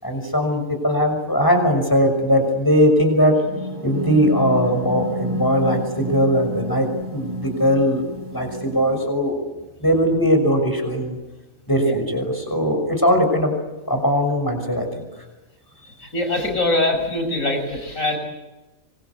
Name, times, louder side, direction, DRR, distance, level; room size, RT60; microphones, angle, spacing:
voice 1, 0.0-3.4 3.8-9.4 9.8-11.2 11.7-13.6 13.9-15.0, equal, 15° left, 5 dB, 6.1 m, -20 dB
sound 1, 3.4-9.1, left 1 dB, 65° right, 4.6 m, -30 dB
voice 2, 16.0-18.2, left 2 dB, 75° left, 5 dB, 6.6 m, -23 dB
26.0 x 25.0 x 8.3 m, 1.1 s
omnidirectional pair, 1.4 m